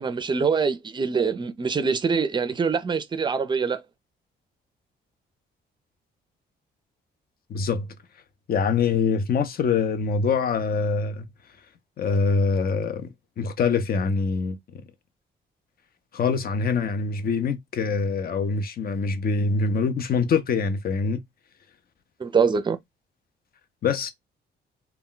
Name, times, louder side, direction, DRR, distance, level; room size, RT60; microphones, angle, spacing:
voice 1, 0.0-3.8 22.2-22.8, right 5 dB, 25° right, 0.4 m, -24 dB
voice 2, 7.5-7.9 8.5-11.3 12.0-13.1 13.4-14.6 16.1-21.2 23.8-24.1, left 5 dB, 50° left, 0.5 m, -24 dB
2.2 x 2.2 x 3.8 m
cardioid pair, 90°, 20 cm